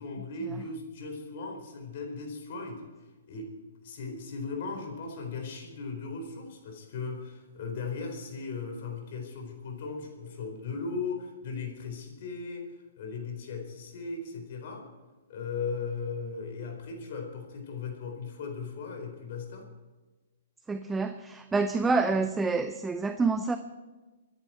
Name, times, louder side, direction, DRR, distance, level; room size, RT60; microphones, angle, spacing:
voice 1, 0.0-2.8 3.3-3.5 3.8-12.7 13.0-14.9 15.3-19.7, left 4 dB, 55° left, 2 dB, 4.4 m, -37 dB
voice 2, 20.7-23.6, right 4 dB, 10° right, 9 dB, 0.6 m, -27 dB
24.5 x 10.5 x 4.5 m, 1.2 s
hypercardioid pair, 140°, 0 cm